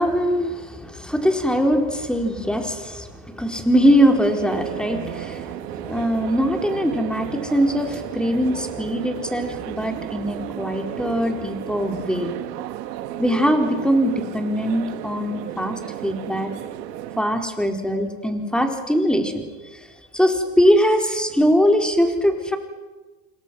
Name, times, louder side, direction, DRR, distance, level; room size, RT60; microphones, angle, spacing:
voice 1, 0.0-12.3 13.2-16.5 17.2-19.4 19.7-19.9 20.1-22.6, equal, ahead, 3 dB, 4.1 m, -21 dB
sound 1, 3.8-17.2, right 12 dB, 80° right, 2.1 m, -33 dB
28.0 x 27.5 x 6.2 m, 1.3 s
supercardioid pair, 110°, 48 cm